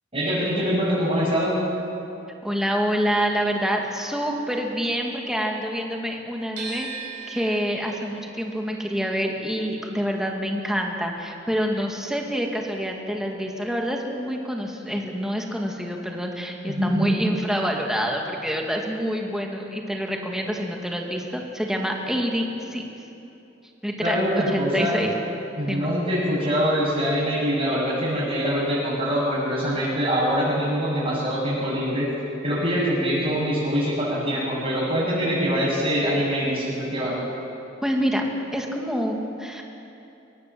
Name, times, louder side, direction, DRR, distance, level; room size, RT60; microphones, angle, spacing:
voice 1, 0.1-1.6 16.7-17.1 24.0-24.9 25.6-32.1 32.4-37.2, equal, 30° right, -10 dB, 7.4 m, -24 dB
voice 2, 2.4-6.9 7.3-22.8 23.8-24.2 24.5-25.1 25.7-25.9 37.8-38.3 38.5-39.6, equal, 5° right, 1 dB, 2.2 m, -27 dB
sound 1, 6.6-12.6 12.9-14.2, right 5 dB, 70° right, 5.5 m, -41 dB
23.5 x 18.0 x 7.8 m, 2.8 s
head